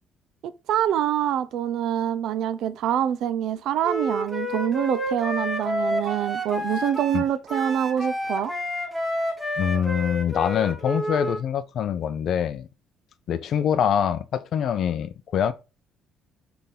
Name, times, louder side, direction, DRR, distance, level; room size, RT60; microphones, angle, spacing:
voice 1, 0.4-8.5, right 10 dB, 65° right, 0.4 m, -25 dB
Wind instrument woodwind instrument, 3.8-11.4, equal, 5° right, 0.8 m, -29 dB
voice 2, 9.6-12.7 13.3-15.5, left 8 dB, 50° left, 0.5 m, -24 dB
3.6 x 3.4 x 4.2 m
cardioid pair, 155°, 0 cm